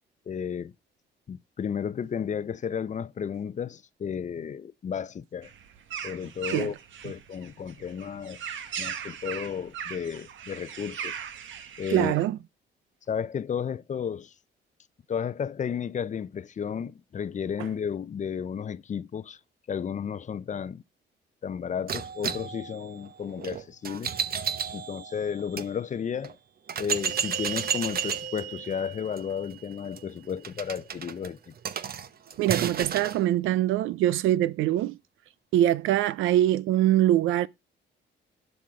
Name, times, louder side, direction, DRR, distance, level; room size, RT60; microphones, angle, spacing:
voice 1, 0.3-0.7 1.3-5.5 6.0-6.7 7.0-8.4 8.8-11.1 11.8-12.1 13.1-14.3 15.1-19.4 19.7-20.8 21.4-24.1 24.7-26.4 26.8-31.5, left 7 dB, 40° left, 0.6 m, -33 dB
sound 1, 5.4-12.3, right 8 dB, 75° right, 1.3 m, -39 dB
voice 2, 11.9-12.4 32.4-35.0 35.5-37.5, right 13 dB, 90° right, 0.5 m, -23 dB
sound 2, 21.9-25.7 26.2-26.3 26.7-33.2, right 7 dB, 50° right, 0.9 m, -33 dB
12.0 x 5.5 x 4.8 m
cardioid pair, 90°, 20 cm